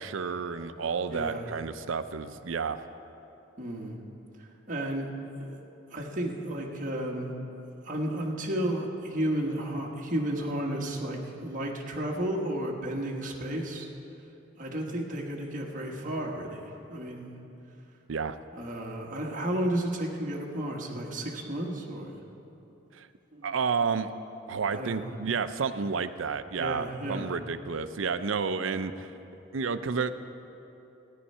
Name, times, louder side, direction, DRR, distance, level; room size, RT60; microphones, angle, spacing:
voice 1, 0.0-2.8 18.1-18.4 22.9-23.1 23.4-24.1 24.5-29.1 29.5-30.1, right 5 dB, 85° right, 11 dB, 0.5 m, -31 dB
voice 2, 1.1-1.5 3.6-4.0 4.7-5.1 5.4-5.5 5.9-7.3 7.8-13.9 14.6-17.3 18.5-22.2 23.3-23.5 24.7-25.1 26.5-27.3, right 1 dB, 40° right, -1 dB, 1.4 m, -32 dB
14.0 x 9.6 x 5.5 m, 2.9 s
head